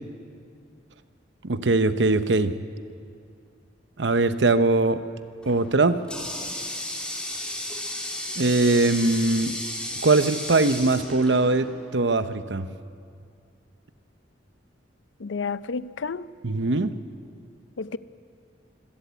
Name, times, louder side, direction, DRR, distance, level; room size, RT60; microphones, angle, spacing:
voice 1, 1.4-2.5 4.0-5.0 5.5-6.0 8.4-9.5 10.0-12.7 16.4-16.9, right 3 dB, 70° right, 0.9 m, -21 dB
Water tap faucet, 5.4-11.9, left 1 dB, 5° left, 3.5 m, -34 dB
voice 2, 15.2-16.3 17.8-18.0, left 5 dB, 90° left, 0.6 m, -31 dB
25.0 x 17.0 x 8.2 m
head